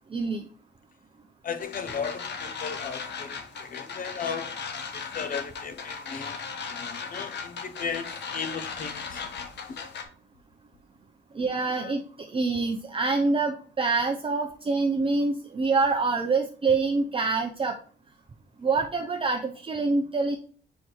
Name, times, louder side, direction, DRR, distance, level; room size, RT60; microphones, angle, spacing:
voice 1, 0.1-0.4 11.3-12.0 12.3-17.8 18.6-20.4, right 3 dB, 25° right, 2 dB, 0.7 m, -26 dB
voice 2, 1.4-4.5 4.9-6.4 6.7-9.8 11.8-11.9, left 6 dB, 45° left, 10 dB, 0.8 m, -36 dB
sound 1, 1.6-10.0, left 5 dB, 60° left, 1.1 m, -37 dB
4.9 x 4.7 x 4.4 m, 0.43 s
cardioid pair, 90°, 20 cm